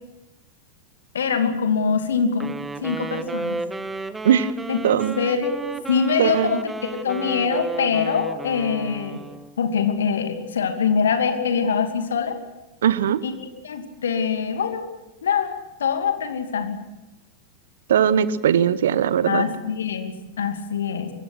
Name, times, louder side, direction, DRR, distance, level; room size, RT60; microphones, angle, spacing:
voice 1, 1.1-2.5 2.8-3.6 4.7-4.8 5.2-5.6 5.9-9.2 9.6-12.4 13.2-13.3 13.6-14.9 15.2-16.8 19.3-21.1, left 6 dB, 65° left, 6 dB, 2.7 m, -24 dB
Wind instrument woodwind instrument, 2.3-9.6, right 3 dB, 10° right, 1.1 m, -33 dB
voice 2, 6.2-6.6 12.8-13.2 17.9-19.4, right 9 dB, 60° right, 17 dB, 1.0 m, -19 dB
25.0 x 23.0 x 6.3 m, 0.99 s
figure-of-eight pair, 90°, 0 cm